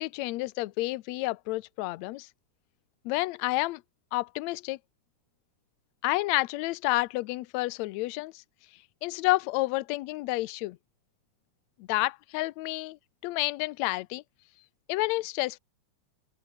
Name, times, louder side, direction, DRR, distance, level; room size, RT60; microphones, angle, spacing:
voice 1, 0.0-2.3 3.1-3.8 4.1-4.8 6.0-8.4 9.0-10.8 11.9-13.0 13.2-14.2 14.9-15.6, left 20 dB, 80° left, 1.9 m, -29 dB
open air
omnidirectional pair, 3.4 m